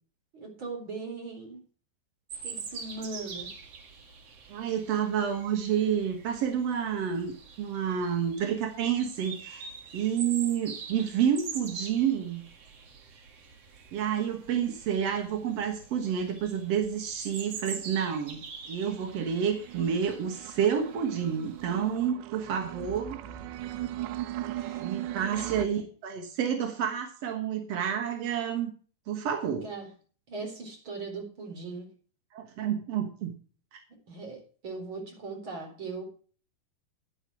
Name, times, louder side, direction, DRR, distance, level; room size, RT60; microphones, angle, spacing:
voice 1, 0.3-1.6 2.4-3.5 24.5-24.8 25.3-25.4 29.6-29.9 30.3-31.9 34.1-36.0, right 3 dB, 30° right, 1 dB, 4.3 m, -39 dB
sound 1, 2.3-22.1, right 5 dB, 50° right, 2.1 m, -45 dB
voice 2, 4.5-12.4 13.9-23.2 24.8-28.7 29.1-29.7 32.3-33.3 33.7-33.8, right 8 dB, 65° right, 5 dB, 1.6 m, -29 dB
sound 2, 18.9-25.7, right 13 dB, 90° right, 3.1 m, -39 dB
11.0 x 9.0 x 4.9 m, 0.41 s
omnidirectional pair, 4.9 m